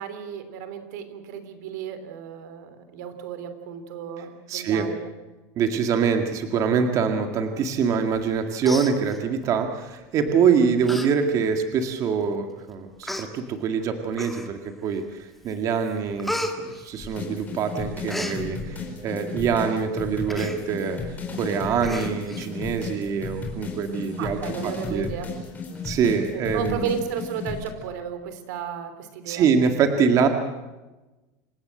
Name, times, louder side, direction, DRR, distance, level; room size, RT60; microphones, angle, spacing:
voice 1, 0.0-5.1 24.2-25.3 26.3-29.5, right 7 dB, 85° right, 10 dB, 3.2 m, -34 dB
voice 2, 4.5-4.9 5.6-21.0 21.3-24.4 24.6-25.1 25.8-26.9 29.3-30.3, right 6 dB, 35° right, 6 dB, 2.0 m, -24 dB
Human voice, 8.2-8.3 8.6-9.5 10.3-10.4 10.8-11.1 11.5-11.6 12.3-12.4 13.0-13.3 14.1-14.7 15.2-15.5 15.8-17.5 17.8-18.4 20.3-20.6 21.0-21.1 21.3-21.4 21.8-22.5 22.8-22.9, left 1 dB, ahead, 1.8 m, -33 dB
sound 1, 17.0-27.7, left 4 dB, 20° left, 4.9 m, -34 dB
27.5 x 16.5 x 7.8 m, 1.1 s
cardioid pair, 160°, 9 cm